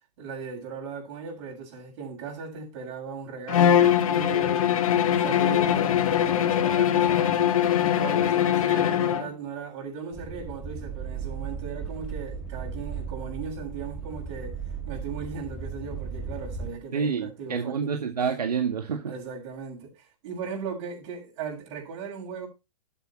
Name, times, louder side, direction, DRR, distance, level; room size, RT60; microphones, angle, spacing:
voice 1, 0.2-7.6 7.9-17.9 19.0-22.5, right 6 dB, 45° right, 7.2 m, -38 dB
Bowed string instrument, 3.5-9.3, left 10 dB, 60° left, 2.0 m, -22 dB
sound 1, 10.1-16.8, right 5 dB, 5° right, 2.0 m, -36 dB
voice 2, 16.9-19.0, right 6 dB, 80° right, 1.8 m, -28 dB
12.0 x 8.3 x 4.4 m
hypercardioid pair, 135°, 20 cm